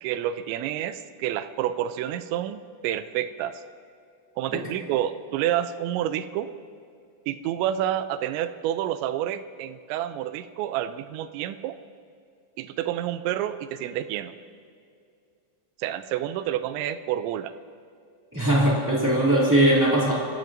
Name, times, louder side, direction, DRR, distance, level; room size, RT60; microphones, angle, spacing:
voice 1, 0.0-3.6 4.4-6.5 7.3-11.8 12.6-14.3 15.8-17.5, right 11 dB, 85° right, 11 dB, 2.7 m, -29 dB
voice 2, 18.3-20.1, right 1 dB, 15° right, -6 dB, 0.7 m, -20 dB
24.5 x 15.0 x 2.7 m, 2.4 s
omnidirectional pair, 5.4 m